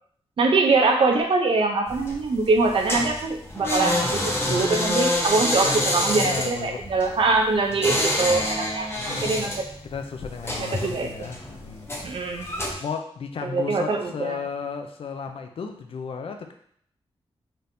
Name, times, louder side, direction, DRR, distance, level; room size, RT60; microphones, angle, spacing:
voice 1, 0.4-9.7 10.6-11.1 12.0-12.5 13.4-14.4, right 3 dB, 55° right, 2 dB, 0.7 m, -23 dB
sound 1, 1.9-12.7, left 1 dB, 25° left, 0.8 m, -27 dB
voice 2, 5.4-5.8 6.1-6.9 7.7-8.0 8.9-9.5 9.8-11.9 12.8-16.5, left 5 dB, 60° left, 5 dB, 0.5 m, -34 dB
4.2 x 3.3 x 2.7 m, 0.64 s
wide cardioid pair, 115°, 10 cm